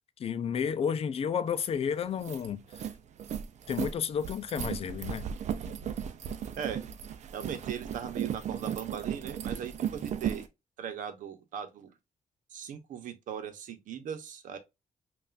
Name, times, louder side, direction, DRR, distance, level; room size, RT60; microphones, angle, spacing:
voice 1, 0.2-2.8 3.7-5.3, left 7 dB, 50° left, 0.5 m, -31 dB
sound 1, 1.6-1.7 2.0-10.5, right 8 dB, 60° right, 0.5 m, -36 dB
voice 2, 7.3-10.5 10.8-11.9 12.5-14.6, right 8 dB, 85° right, 0.9 m, -39 dB
5.5 x 2.5 x 2.4 m
cardioid pair, 135°, 13 cm